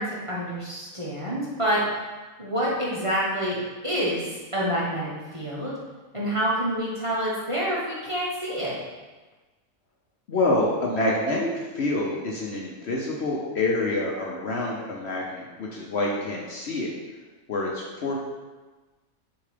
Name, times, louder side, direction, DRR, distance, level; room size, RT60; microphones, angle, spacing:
voice 1, 0.0-1.8 2.4-3.6 3.8-5.7 6.1-8.7, equal, 25° right, -7 dB, 1.0 m, -27 dB
voice 2, 10.3-11.5 11.7-16.9 17.5-18.2, left 2 dB, 55° left, -2 dB, 0.9 m, -27 dB
6.6 x 2.9 x 4.9 m, 1.2 s
omnidirectional pair, 1.5 m